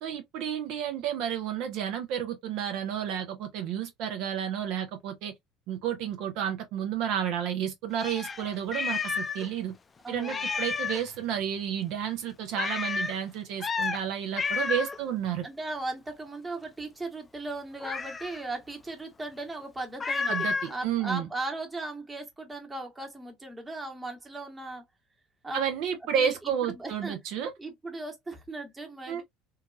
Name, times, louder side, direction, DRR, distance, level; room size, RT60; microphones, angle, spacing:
voice 1, 0.0-5.3 5.7-9.7 10.1-15.4 20.3-21.3 25.5-27.5 29.1-29.2, right 9 dB, 65° right, 0.5 m, -31 dB
Meow, 8.0-9.5 9.7-9.8 10.2-11.1 12.6-13.2 13.6-14.0 14.4-15.0 17.8-18.4 20.0-20.7, left 4 dB, 25° left, 0.4 m, -31 dB
voice 2, 10.0-10.5 15.4-24.8 25.4-25.6 26.1-26.3 26.7-27.2 27.6-29.2, right 2 dB, 20° right, 1.1 m, -37 dB
2.8 x 2.3 x 2.3 m
hypercardioid pair, 80°, 0 cm